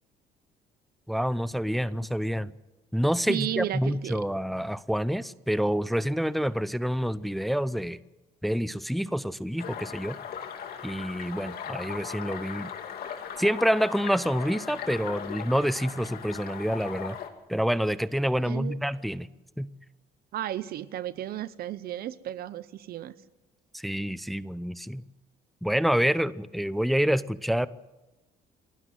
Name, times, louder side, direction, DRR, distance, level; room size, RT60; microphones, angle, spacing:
voice 1, 1.1-2.5 2.9-8.0 8.4-10.2 10.8-12.7 13.4-17.2 17.5-19.3 19.6-19.7 23.7-25.0 25.6-27.7, equal, ahead, 16 dB, 0.7 m, -27 dB
voice 2, 3.3-4.2 18.4-18.8 20.3-23.1, right 12 dB, 65° right, 15 dB, 1.0 m, -33 dB
sound 1, 9.6-17.3, left 8 dB, 65° left, 2.9 m, -38 dB
29.0 x 12.5 x 9.5 m, 1.1 s
cardioid pair, 110°, 17 cm